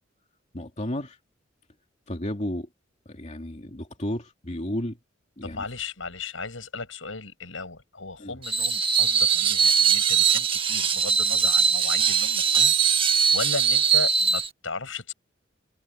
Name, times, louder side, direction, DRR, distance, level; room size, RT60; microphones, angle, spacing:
voice 1, 0.5-1.2 2.1-2.7 3.1-5.0 5.4-5.6 8.2-8.4, left 1 dB, 35° left, 2.8 m, -32 dB
voice 2, 5.4-12.7 13.0-15.1, left 4 dB, 90° left, 7.1 m, -36 dB
Screech, 8.4-14.5, right 7 dB, 25° right, 1.7 m, -21 dB
head